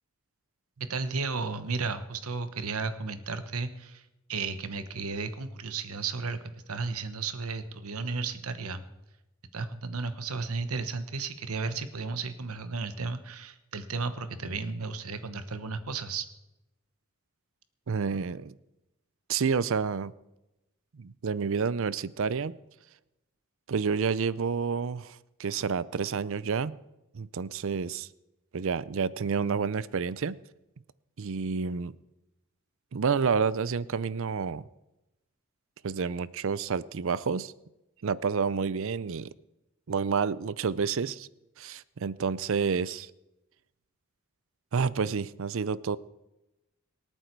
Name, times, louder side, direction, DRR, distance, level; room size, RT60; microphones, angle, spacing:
voice 1, 0.9-4.0 4.3-8.8 9.5-16.3, right 4 dB, 80° right, 11 dB, 1.1 m, -34 dB
voice 2, 17.9-18.5 19.3-20.1 20.9-22.5 23.7-26.7 27.1-28.1 28.5-30.4 31.2-31.9 32.9-34.6 35.8-37.5 38.0-39.3 39.9-41.3 41.6-43.1 44.7-46.0, right 5 dB, 65° right, 19 dB, 0.5 m, -29 dB
25.0 x 9.0 x 4.6 m, 0.94 s
head